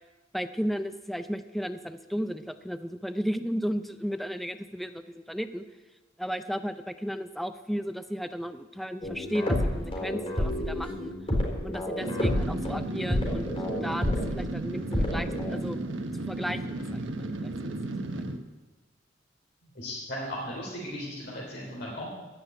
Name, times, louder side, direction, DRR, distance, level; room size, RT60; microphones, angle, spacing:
voice 1, 0.3-5.7 6.2-11.1 11.6-13.5 13.8-15.8 16.2-17.7 18.1-18.3, equal, ahead, 10 dB, 0.5 m, -34 dB
sound 1, 9.0-15.7, left 1 dB, 30° left, 4.3 m, -30 dB
sound 2, 12.0-18.4, right 2 dB, 80° right, 1.1 m, -34 dB
voice 2, 19.7-22.1, equal, 60° left, -4 dB, 3.2 m, -37 dB
15.5 x 6.1 x 9.7 m, 1.2 s
head